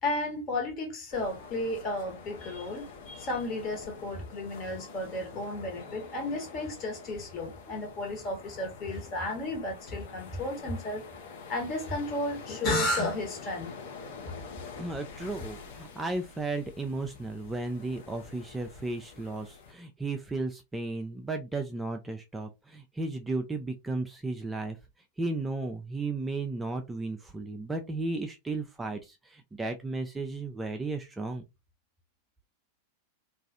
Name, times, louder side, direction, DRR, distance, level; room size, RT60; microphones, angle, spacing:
voice 1, 0.0-11.0 11.5-13.7, left 1 dB, 30° left, 1.1 m, -33 dB
sound 1, 1.1-19.7, left 5 dB, 55° left, 0.7 m, -47 dB
voice 2, 14.8-24.8 25.2-31.4, right 2 dB, 10° right, 0.3 m, -34 dB
2.4 x 2.3 x 2.5 m
figure-of-eight pair, 90°, 0 cm